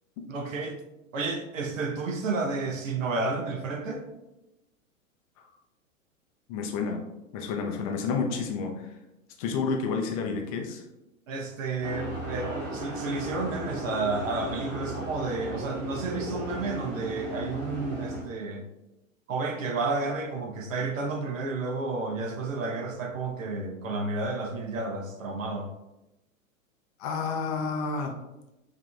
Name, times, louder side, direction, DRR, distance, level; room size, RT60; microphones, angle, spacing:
voice 1, 0.3-0.8 1.1-4.1 11.3-18.6 19.3-25.7, right 3 dB, 65° right, 0.9 m, -31 dB
voice 2, 6.5-7.0 7.3-8.9 9.4-10.8 27.0-28.2, left 5 dB, 30° left, 0.4 m, -30 dB
sound 1, 11.8-18.2, right 1 dB, 25° right, 1.1 m, -36 dB
4.9 x 2.8 x 2.3 m
figure-of-eight pair, 100°, 42 cm